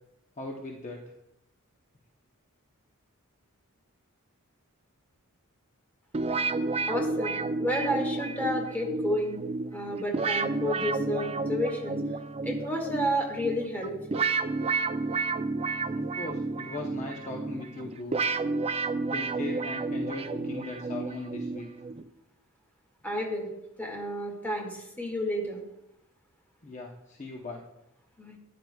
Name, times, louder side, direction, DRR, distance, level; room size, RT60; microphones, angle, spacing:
voice 1, 0.4-1.1 15.9-18.2 19.1-21.8 26.6-27.6, left 3 dB, 35° left, -1 dB, 0.8 m, -39 dB
sound 1, 6.1-22.1, right 3 dB, 30° right, 0.4 m, -31 dB
voice 2, 6.9-9.4 9.7-12.0 12.4-14.3 23.0-23.5 23.8-25.6 28.2-28.3, equal, 10° left, -1 dB, 2.0 m, -31 dB
13.5 x 9.5 x 2.3 m, 0.83 s
head